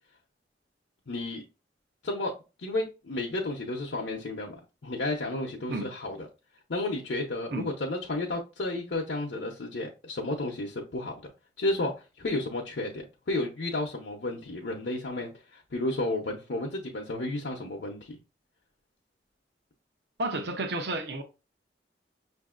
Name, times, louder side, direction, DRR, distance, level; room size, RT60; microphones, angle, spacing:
voice 1, 1.1-1.4 2.0-2.3 2.6-4.6 4.8-6.3 6.7-11.3 11.6-18.2, left 2 dB, 75° left, 0.7 m, -32 dB
voice 2, 20.2-21.2, right 2 dB, 65° right, 0.6 m, -31 dB
6.1 x 2.6 x 2.4 m
head